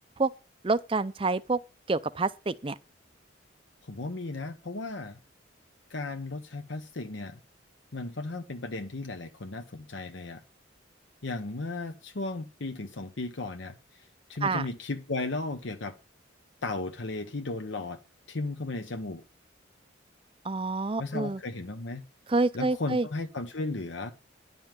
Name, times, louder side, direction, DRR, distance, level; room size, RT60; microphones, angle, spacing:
voice 1, 0.6-1.6 1.9-2.8 14.4-14.7 20.4-21.4 22.3-23.1, right 3 dB, 25° right, 0.5 m, -27 dB
voice 2, 3.8-5.2 5.9-7.4 7.9-10.4 11.2-16.0 16.6-18.0 18.3-19.2 21.0-22.0 22.5-24.1, left 2 dB, 70° left, 0.9 m, -35 dB
10.5 x 5.4 x 7.5 m
head